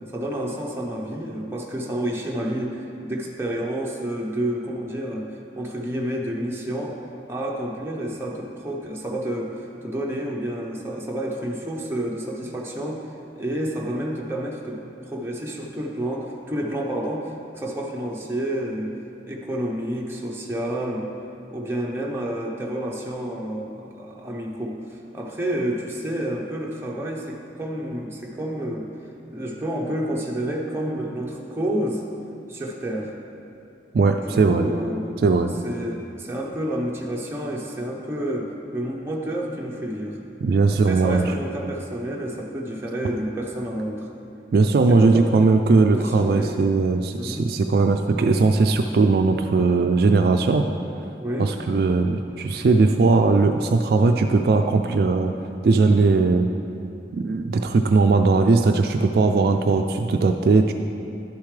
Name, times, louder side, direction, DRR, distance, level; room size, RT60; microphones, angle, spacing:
voice 1, 0.1-7.0 7.3-13.0 13.3-18.9 19.3-21.1 21.5-28.9 29.3-32.0 32.5-33.1 34.2-35.1 35.6-40.2 40.7-44.1 44.9-45.5 45.8-46.6 47.2-47.5 51.2-51.5, right 1 dB, 15° right, -2 dB, 0.8 m, -29 dB
voice 2, 33.9-34.7 35.2-35.5 40.4-41.3 44.5-50.7 51.4-55.3 55.6-56.5 57.1-60.7, right 3 dB, 60° right, 5 dB, 0.3 m, -19 dB
11.0 x 6.9 x 3.3 m, 2.7 s
head